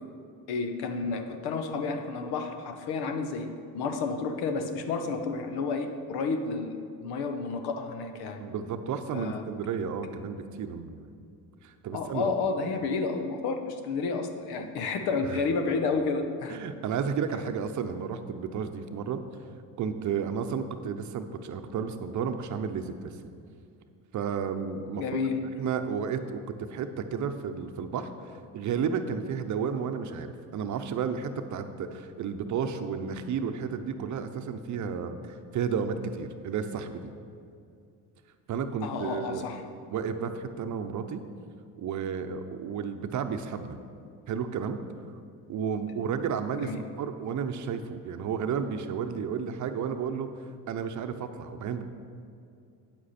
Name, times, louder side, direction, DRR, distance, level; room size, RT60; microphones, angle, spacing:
voice 1, 0.5-8.4 9.1-9.5 11.9-16.6 25.0-25.5 38.8-39.6 46.6-46.8, left 4 dB, 75° left, 7 dB, 1.0 m, -31 dB
voice 2, 8.4-11.1 11.6-12.3 15.2-15.4 16.5-19.2 19.8-23.1 24.1-25.0 25.6-26.4 26.7-28.1 28.5-37.1 38.5-39.4 39.9-41.2 41.8-43.8 44.3-44.8 45.5-50.3 50.7-51.8, right 6 dB, 50° right, 8 dB, 0.7 m, -32 dB
9.1 x 7.8 x 4.2 m, 2.5 s
supercardioid pair, 95°, 39 cm